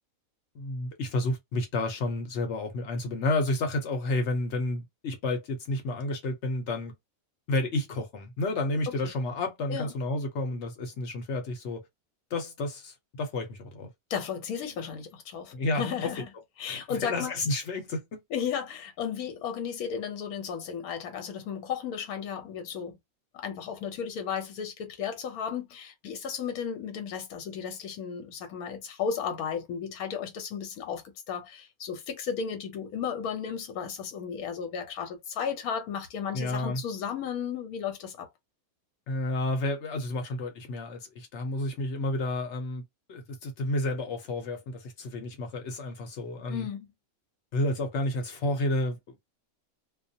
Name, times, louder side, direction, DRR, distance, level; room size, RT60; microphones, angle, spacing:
voice 1, 0.5-6.9 7.5-11.8 12.3-13.9 15.5-16.1 16.7-18.2 36.3-36.8 39.1-42.8 43.1-46.7 47.5-49.3, left 2 dB, 55° left, 0.9 m, -31 dB
voice 2, 14.1-16.3 16.6-17.3 18.3-23.0 23.3-38.3 46.5-46.9, left 7 dB, 85° left, 1.2 m, -34 dB
2.3 x 2.2 x 2.6 m
omnidirectional pair, 1.5 m